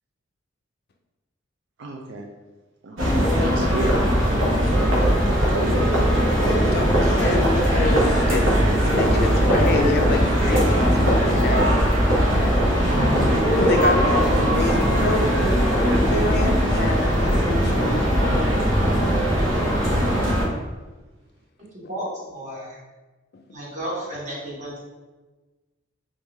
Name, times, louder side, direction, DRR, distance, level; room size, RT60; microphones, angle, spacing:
voice 1, 1.8-2.3 2.8-6.3 15.8-16.1 18.9-19.9, right 3 dB, 65° right, 1 dB, 0.4 m, -32 dB
sound 1, 3.0-20.5, equal, 80° right, 1.0 m, -19 dB
voice 2, 6.3-8.4 8.7-11.7 13.5-15.2 16.1-18.1, left 3 dB, 55° left, 4 dB, 0.4 m, -27 dB
voice 3, 21.7-22.8 23.5-24.8, equal, 40° right, -6 dB, 1.2 m, -33 dB
3.6 x 2.6 x 3.2 m, 1.2 s
head